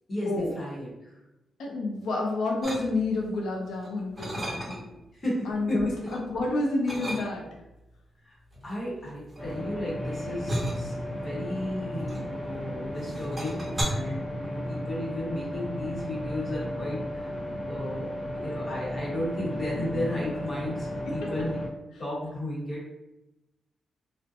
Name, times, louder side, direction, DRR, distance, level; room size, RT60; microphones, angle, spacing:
voice 1, 0.1-1.2 5.1-5.9 8.2-8.4 8.6-21.6 22.0-23.0, left 1 dB, 40° left, -4 dB, 1.0 m, -34 dB
voice 2, 1.6-4.9 5.5-7.5 19.7-20.0 21.1-21.3, left 2 dB, 85° left, -1 dB, 0.6 m, -29 dB
sound 1, 2.6-3.3 3.7-5.0 5.5-6.2 6.8-7.7 8.5-12.6 13.0-13.8, equal, 20° right, 1.1 m, -35 dB
sound 2, 9.4-21.7, equal, 5° left, 0.6 m, -35 dB
2.6 x 2.1 x 2.6 m, 0.94 s
cardioid pair, 100°, 0 cm